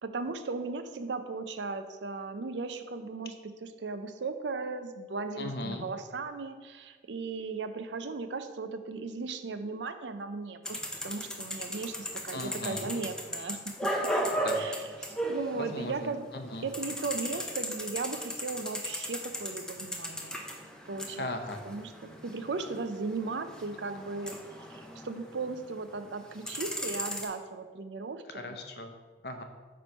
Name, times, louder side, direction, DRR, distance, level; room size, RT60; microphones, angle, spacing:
voice 1, 0.0-13.6 14.5-16.3 16.6-20.4 20.9-21.4 21.6-24.4 24.7-28.6, right 4 dB, 90° right, 9 dB, 0.5 m, -37 dB
voice 2, 5.4-5.9 12.3-12.9 14.3-14.7 15.6-16.7 21.2-21.6 28.3-29.0 29.2-29.4, left 2 dB, 65° left, 6 dB, 0.7 m, -38 dB
sound 1, 10.7-16.1 16.4-25.7 26.1-27.3, equal, 5° left, 0.5 m, -36 dB
8.6 x 3.2 x 5.3 m, 1.4 s
head